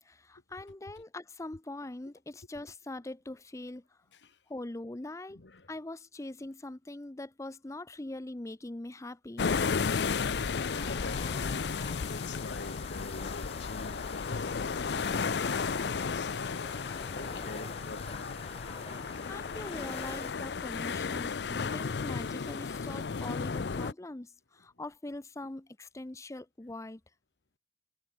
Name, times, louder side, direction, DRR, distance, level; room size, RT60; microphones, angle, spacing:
voice 1, 0.0-4.0 4.5-5.4 5.7-9.5 19.0-27.0, left 2 dB, 20° left, 0.6 m, -42 dB
voice 2, 5.3-5.7 10.5-18.5 21.5-21.6 23.2-23.4, left 2 dB, 85° left, 1.5 m, -45 dB
sound 1, 9.4-23.9, left 5 dB, 70° left, 0.5 m, -34 dB
sound 2, 10.6-20.3, left 4 dB, 35° left, 1.6 m, -45 dB
sound 3, 14.5-20.3, right 2 dB, 15° right, 2.7 m, -59 dB
head